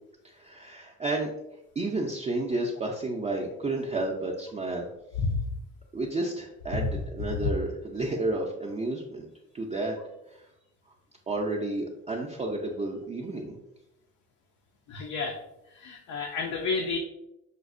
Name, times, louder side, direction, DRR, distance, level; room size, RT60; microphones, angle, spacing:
voice 1, 0.2-1.3 1.8-4.9 5.9-9.3 9.5-10.0 10.3-10.4 11.3-13.5, right 2 dB, 25° right, -1 dB, 0.4 m, -31 dB
voice 2, 14.9-15.4 15.7-17.0, left 4 dB, 80° left, 2 dB, 0.5 m, -30 dB
5.0 x 2.0 x 2.4 m, 0.89 s
cardioid pair, 90°, 30 cm